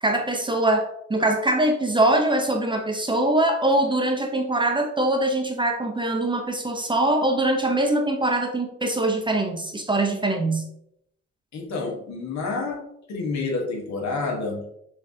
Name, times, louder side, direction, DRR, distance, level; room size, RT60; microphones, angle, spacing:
voice 1, 0.0-10.6, right 1 dB, 15° right, 3 dB, 0.6 m, -23 dB
voice 2, 11.5-14.8, left 3 dB, 65° left, 1 dB, 1.2 m, -29 dB
6.4 x 2.4 x 2.7 m, 0.74 s
cardioid pair, 90°, 30 cm